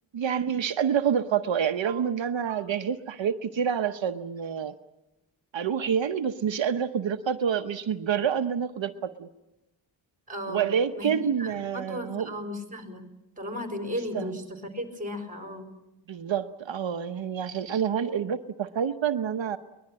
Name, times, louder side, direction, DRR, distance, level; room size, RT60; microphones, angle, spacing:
voice 1, 0.1-4.7 5.5-9.3 10.5-12.3 14.1-14.3 16.1-19.6, right 8 dB, 75° right, 7 dB, 1.0 m, -28 dB
voice 2, 10.3-10.7 10.9-13.1 13.4-15.7, left 1 dB, 15° right, 5 dB, 4.3 m, -35 dB
23.0 x 21.0 x 8.7 m, 0.98 s
wide cardioid pair, 150°, 45 cm